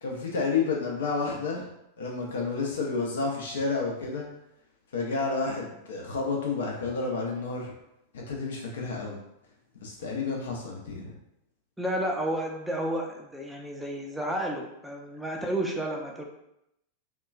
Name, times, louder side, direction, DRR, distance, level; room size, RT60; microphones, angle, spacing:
voice 1, 0.0-1.7 2.0-4.2 4.9-7.7 8.1-9.2 9.8-11.1, left 4 dB, 60° left, -1 dB, 0.5 m, -30 dB
voice 2, 11.8-16.2, right 1 dB, 5° right, 0 dB, 0.5 m, -31 dB
2.9 x 2.3 x 2.4 m, 0.81 s
figure-of-eight pair, 90°, 0 cm